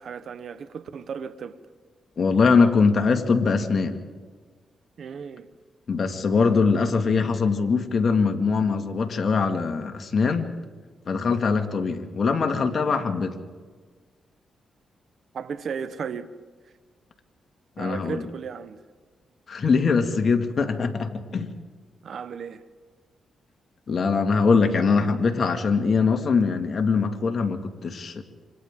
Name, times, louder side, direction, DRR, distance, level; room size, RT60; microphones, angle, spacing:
voice 1, 0.0-1.6 5.0-5.5 15.3-16.3 17.8-18.8 22.0-22.6, right 6 dB, 65° right, 1.1 m, -35 dB
voice 2, 2.2-4.0 5.9-10.5 11.1-13.3 17.8-18.2 19.5-21.5 23.9-28.2, left 4 dB, 50° left, 2.0 m, -22 dB
27.5 x 25.5 x 3.7 m
cardioid pair, 70°, 0 cm